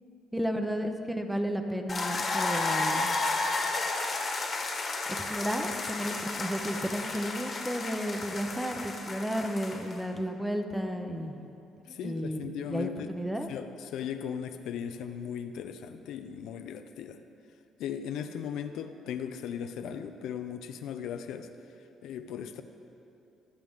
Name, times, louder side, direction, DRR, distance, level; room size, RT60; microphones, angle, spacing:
voice 1, 0.3-3.2 5.3-11.4 11.9-13.5, equal, 5° right, 6 dB, 0.7 m, -33 dB
sound 1, 1.9-10.0, left 3 dB, 30° left, 1.3 m, -32 dB
voice 2, 11.9-13.1 13.5-17.2 17.8-21.5 22.0-22.6, left 8 dB, 75° left, 8 dB, 0.6 m, -37 dB
21.5 x 7.6 x 3.7 m, 2.9 s
cardioid pair, 135°, 0 cm